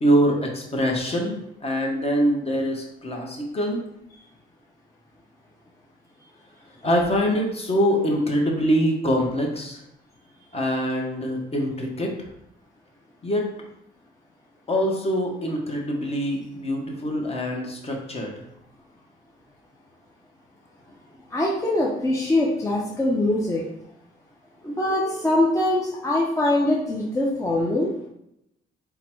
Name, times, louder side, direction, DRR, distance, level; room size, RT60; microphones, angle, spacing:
voice 1, 0.0-3.8 6.8-9.8 10.5-12.1 13.2-13.4 14.7-18.3, equal, 30° left, 0 dB, 1.0 m, -24 dB
voice 2, 21.3-23.7 24.6-27.9, left 1 dB, 15° left, -4 dB, 0.7 m, -23 dB
3.8 x 2.2 x 4.4 m, 0.79 s
cardioid pair, 90°, 20 cm